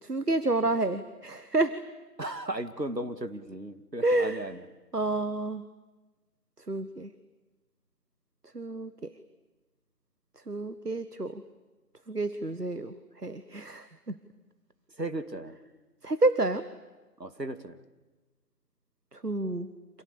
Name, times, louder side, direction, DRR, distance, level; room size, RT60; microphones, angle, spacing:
voice 1, 0.0-1.8 4.0-4.4 4.9-5.6 6.7-7.1 8.5-9.1 10.5-11.4 12.1-12.9 13.2-14.2 16.0-16.6 19.1-19.7, right 2 dB, 70° right, 12 dB, 1.5 m, -29 dB
voice 2, 2.2-4.7 15.0-15.5 17.2-17.8, right 1 dB, 90° right, 10 dB, 2.5 m, -36 dB
29.0 x 27.0 x 7.1 m, 1.2 s
figure-of-eight pair, 180°, 48 cm